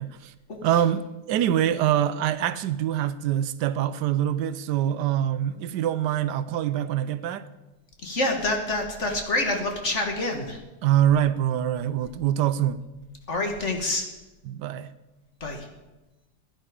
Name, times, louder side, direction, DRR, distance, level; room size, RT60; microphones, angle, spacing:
voice 1, 0.0-0.3 0.6-7.4 10.8-12.8 14.5-14.9, right 11 dB, 85° right, 1.2 m, -24 dB
voice 2, 8.0-10.6 13.3-14.1 15.4-15.7, left 2 dB, 45° left, 1.8 m, -27 dB
16.0 x 10.5 x 5.0 m
omnidirectional pair, 1.8 m